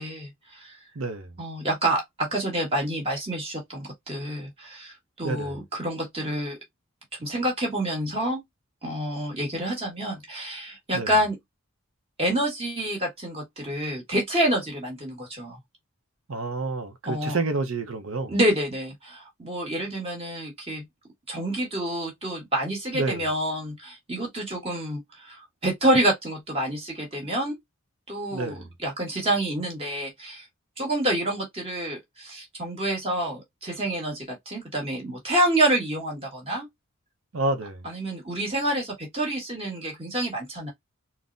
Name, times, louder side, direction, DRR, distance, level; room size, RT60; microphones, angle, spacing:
voice 1, 0.0-0.8 1.4-6.6 7.2-8.4 8.8-11.4 12.2-15.6 17.0-17.4 18.3-20.9 21.3-27.6 28.1-30.4 30.8-36.7 37.8-40.7, right 1 dB, 25° right, 1.5 m, -28 dB
voice 2, 0.9-1.4 5.2-5.6 10.9-11.1 16.3-18.3 22.9-23.2 28.3-28.7 37.3-37.9, right 3 dB, 60° right, 0.7 m, -29 dB
3.9 x 2.1 x 2.5 m
head